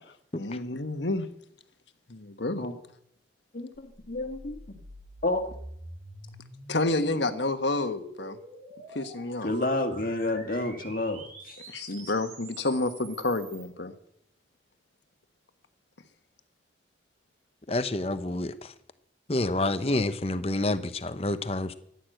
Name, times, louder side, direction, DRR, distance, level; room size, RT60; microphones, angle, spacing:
voice 1, 0.4-1.2 2.1-2.6 6.7-8.4 8.9-9.5 11.7-13.9, left 2 dB, 75° left, 9 dB, 1.4 m, -29 dB
voice 2, 3.5-4.8 5.2-5.5 9.4-11.6, left 2 dB, 50° left, 6 dB, 1.9 m, -30 dB
sound 1, 3.7-13.7, right 2 dB, 50° right, 5.6 m, -47 dB
voice 3, 17.7-18.7 19.3-21.7, left 2 dB, 35° left, 12 dB, 0.9 m, -28 dB
15.0 x 11.0 x 7.9 m, 0.70 s
head